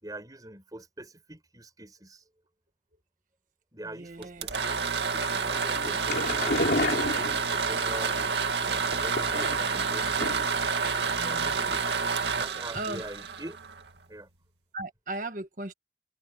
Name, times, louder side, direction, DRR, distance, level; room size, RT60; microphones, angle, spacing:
voice 1, 0.0-2.2 3.7-6.6 7.5-10.4 11.0-11.8 12.3-13.6 14.1-14.3, right 1 dB, 20° right, 5.0 m, -43 dB
voice 2, 4.0-4.5 11.2-11.7 12.7-13.0 14.7-15.7, right 2 dB, 45° right, 1.5 m, -37 dB
sound 1, 4.2-14.0, right 5 dB, 65° right, 2.3 m, -29 dB
sound 2, 5.8-7.9 8.8-9.8 10.2-10.6 10.9-11.0 11.3-11.4, left 2 dB, 55° left, 3.3 m, -30 dB
head